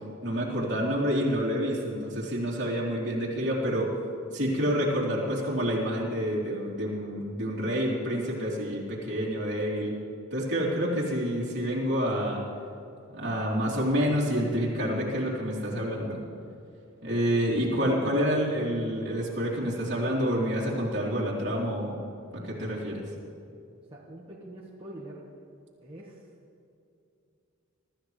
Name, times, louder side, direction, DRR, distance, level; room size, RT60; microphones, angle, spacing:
voice 1, 0.2-3.9 4.3-9.9 10.3-12.4 13.1-16.2 17.0-22.0 22.3-23.0, equal, 55° right, -4 dB, 3.5 m, -28 dB
voice 2, 23.9-25.2 25.8-26.2, right 1 dB, 25° right, -5 dB, 1.5 m, -44 dB
24.5 x 13.5 x 3.3 m, 2.6 s
head